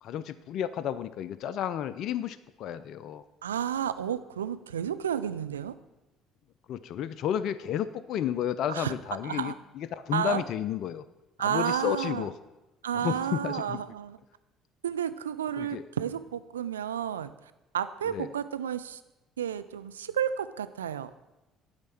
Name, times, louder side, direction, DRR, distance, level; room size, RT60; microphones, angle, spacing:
voice 1, 0.0-3.2 6.7-11.1 11.4-12.3 12.9-13.8 15.6-15.8 18.1-18.3, left 9 dB, 60° left, 14 dB, 0.3 m, -32 dB
voice 2, 3.4-5.8 8.7-8.9 9.2-9.5 10.1-10.4 11.4-12.3 12.8-14.2 14.8-17.3 17.7-19.0 19.4-21.1, right 9 dB, 85° right, 12 dB, 0.3 m, -31 dB
9.5 x 4.3 x 7.5 m, 1.0 s
hypercardioid pair, 55°, 0 cm